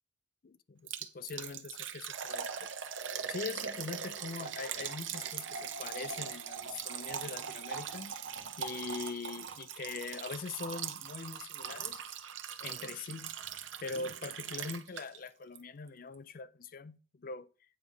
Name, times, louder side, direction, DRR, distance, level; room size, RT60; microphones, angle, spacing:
voice 1, 0.4-2.7 3.3-8.1 8.6-12.0 12.6-13.4 13.8-17.5, left 4 dB, 50° left, 0.5 m, -42 dB
Liquid, 0.9-15.3 15.5-15.6 16.1-16.2, right 7 dB, 90° right, 0.9 m, -41 dB
8.8 x 4.7 x 5.4 m
head